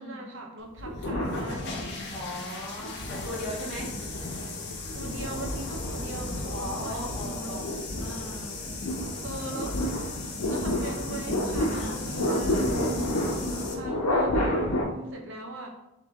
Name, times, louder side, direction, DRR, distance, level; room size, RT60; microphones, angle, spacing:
voice 1, 0.0-1.9 4.9-7.7 8.9-10.0 10.5-12.9 13.7-15.7, right 1 dB, 60° right, 1 dB, 0.8 m, -40 dB
sound 1, 0.8-2.2 2.7-14.8, left 1 dB, 90° left, 0.8 m, -31 dB
sound 2, 0.9-13.7, left 4 dB, 50° left, 0.7 m, -39 dB
voice 2, 2.1-3.9 6.5-7.6 7.9-8.6 11.7-12.0 13.1-13.6, left 1 dB, 5° left, -11 dB, 1.4 m, -38 dB
sound 3, 8.0-15.1, equal, 90° right, 1.2 m, -43 dB
3.7 x 3.2 x 3.6 m, 0.88 s
head